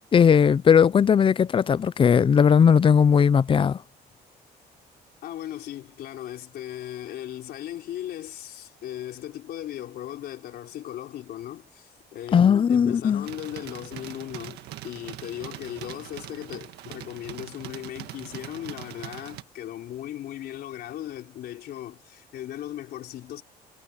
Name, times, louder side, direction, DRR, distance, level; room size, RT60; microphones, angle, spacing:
voice 1, 0.1-3.8 12.3-13.3, left 7 dB, 30° left, 0.6 m, -18 dB
voice 2, 5.2-23.4, left 12 dB, 70° left, 3.8 m, -37 dB
sound 1, 13.2-19.4, right 15 dB, 80° right, 1.6 m, -41 dB
cardioid pair, 110°, 17 cm